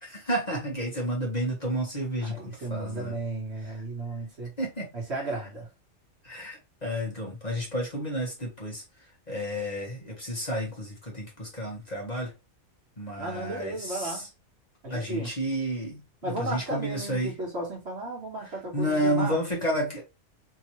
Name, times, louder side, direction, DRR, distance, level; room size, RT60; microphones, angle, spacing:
voice 1, 0.0-3.1 4.6-4.9 6.2-8.8 9.3-12.3 13.0-14.2 14.9-17.3 18.7-20.0, equal, 30° left, 1.4 m, -31 dB
voice 2, 2.2-4.5 4.9-5.7 13.2-14.3 14.8-15.3 16.2-19.4, right 2 dB, 55° right, 1.6 m, -34 dB
3.7 x 2.7 x 3.0 m
omnidirectional pair, 1.4 m